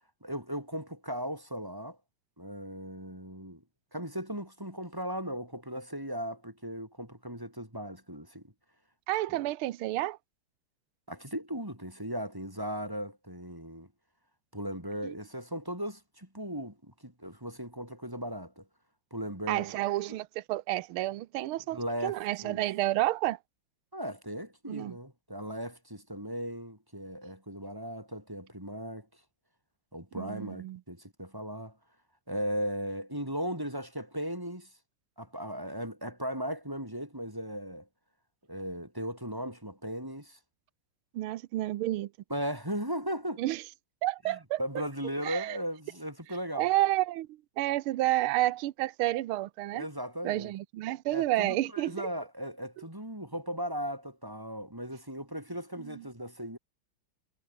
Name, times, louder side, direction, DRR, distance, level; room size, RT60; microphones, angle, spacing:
voice 1, 0.2-2.0 2.4-3.6 3.9-8.5 9.3-9.4 11.1-13.9 14.5-18.6 19.1-19.7 21.7-22.2 22.4-22.6 23.9-29.1 29.9-31.8 32.3-34.7 35.2-37.9 38.5-40.4 42.3-43.4 44.3-46.7 49.7-50.5 51.1-56.6, equal, 10° right, 3.9 m, -37 dB
voice 2, 9.1-10.2 15.0-15.1 19.5-23.4 24.7-25.0 30.1-30.8 41.1-42.1 43.4-43.6 44.0-44.6 45.2-45.6 46.5-47.3 47.6-49.8 50.2-52.1 55.8-56.0, right 16 dB, 75° right, 1.7 m, -30 dB
omnidirectional pair, 2.4 m